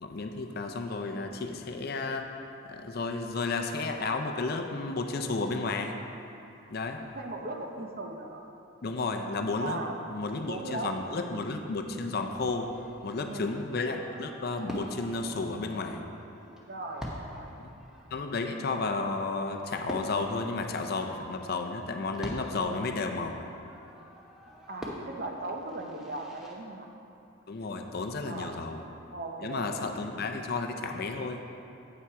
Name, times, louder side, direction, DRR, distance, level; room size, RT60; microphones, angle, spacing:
voice 1, 0.0-2.3 2.7-6.0 6.7-7.0 8.8-9.8 10.1-12.7 13.0-16.0 17.6-17.7 18.1-23.5 27.5-28.8 29.4-31.4, left 3 dB, 45° left, 5 dB, 0.5 m, -32 dB
voice 2, 7.1-8.4 9.6-10.1 10.4-10.9 11.2-11.4 13.2-13.6 16.7-17.5 18.5-18.7 24.7-26.9 28.2-28.7 29.1-30.3, right 2 dB, 45° right, 2 dB, 0.7 m, -38 dB
Fireworks, 12.3-26.5, equal, 5° right, 0.7 m, -46 dB
8.6 x 5.9 x 4.7 m, 2.8 s
head